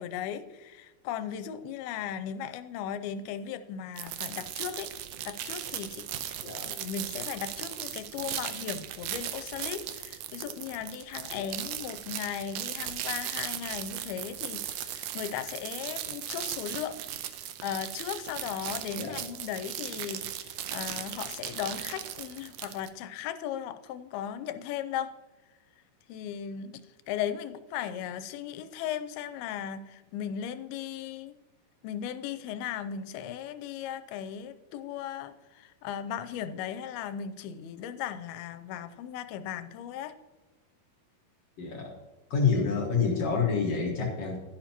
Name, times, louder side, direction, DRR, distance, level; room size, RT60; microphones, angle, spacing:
voice 1, 0.0-4.9 5.3-17.0 17.6-25.1 26.1-31.3 31.8-40.1 42.5-42.7, left 9 dB, 90° left, 11 dB, 2.5 m, -37 dB
sound 1, 4.0-22.9, right 11 dB, 75° right, 1.9 m, -37 dB
voice 2, 41.6-42.0 42.3-44.4, left 5 dB, 55° left, 0 dB, 1.9 m, -27 dB
11.5 x 11.0 x 2.9 m, 1.2 s
omnidirectional pair, 4.4 m